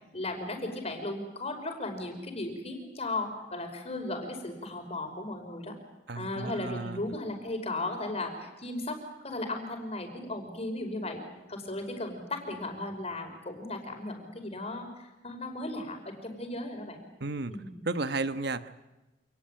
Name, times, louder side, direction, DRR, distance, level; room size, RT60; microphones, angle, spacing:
voice 1, 0.1-5.7 6.1-9.0 9.2-11.2 11.5-17.0 17.5-17.8, left 2 dB, 35° left, 4 dB, 5.4 m, -36 dB
voice 2, 6.1-7.0 17.2-17.5 17.8-18.7, right 3 dB, 60° right, 11 dB, 1.3 m, -33 dB
28.0 x 19.5 x 9.1 m, 1.0 s
head